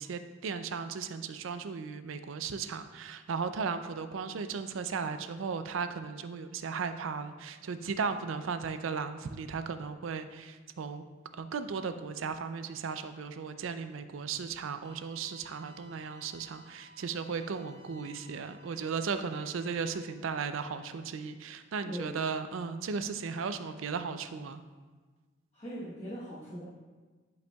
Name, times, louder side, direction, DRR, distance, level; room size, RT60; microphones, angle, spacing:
voice 1, 0.0-11.0 11.4-24.6, right 5 dB, 75° right, 10 dB, 0.4 m, -36 dB
sound 1, 14.8-19.9, right 1 dB, 15° left, 0.6 m, -57 dB
voice 2, 21.8-22.2 25.5-26.6, equal, 35° left, -9 dB, 1.1 m, -40 dB
10.5 x 5.4 x 2.3 m, 1.4 s
head